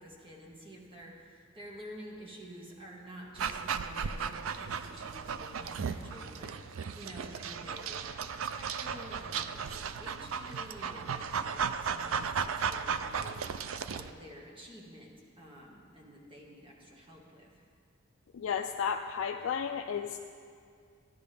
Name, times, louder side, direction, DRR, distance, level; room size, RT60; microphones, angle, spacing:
voice 1, 0.0-17.6, equal, 25° right, -2 dB, 1.6 m, -50 dB
Dog, 3.4-14.1, right 6 dB, 70° right, 0.4 m, -35 dB
voice 2, 18.3-20.2, left 7 dB, 70° left, 5 dB, 0.3 m, -33 dB
14.0 x 10.5 x 3.4 m, 2.3 s
head